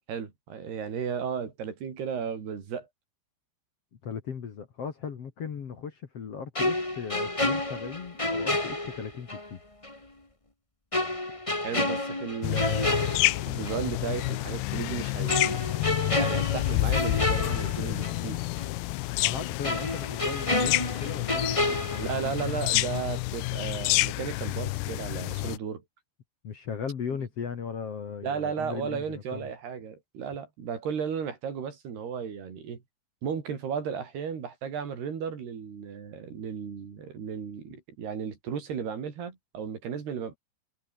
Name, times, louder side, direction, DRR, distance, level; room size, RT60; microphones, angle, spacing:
voice 1, 0.1-2.9 11.6-15.6 16.0-18.4 22.0-25.8 28.2-32.8 33.2-40.4, right 7 dB, 65° right, 5.7 m, -34 dB
voice 2, 4.0-9.6 19.2-22.4 25.4-25.5 26.4-29.5, left 6 dB, 45° left, 2.1 m, -37 dB
sound 1, 6.5-9.5 9.8-10.0 10.9-13.9 14.2-14.4 15.3-18.3 18.6-18.7 19.6-22.7 22.9-23.2, left 2 dB, 15° left, 1.3 m, -30 dB
sound 2, 12.4-25.6, left 20 dB, 80° left, 2.5 m, -29 dB
omnidirectional pair, 5.2 m